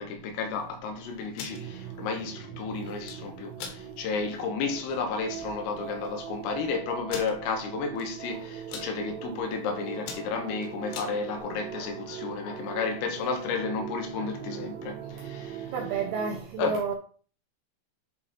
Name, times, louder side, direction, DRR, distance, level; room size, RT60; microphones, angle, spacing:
voice 1, 0.0-15.7 16.6-16.8, left 5 dB, 90° left, 3.9 m, -32 dB
sound 1, 1.2-1.6 2.8-3.2 3.6-3.8 4.3-4.4 4.8-5.0 5.8-5.9 6.1-6.2 7.1-7.3 8.0-8.3 8.5-8.9 9.5-9.7 10.0-11.1, left 6 dB, 75° left, 3.6 m, -40 dB
sound 2, 1.5-16.4, right 9 dB, 65° right, 3.3 m, -41 dB
voice 2, 15.7-16.9, right 5 dB, 80° right, 2.3 m, -30 dB
11.0 x 3.7 x 4.4 m
omnidirectional pair, 5.7 m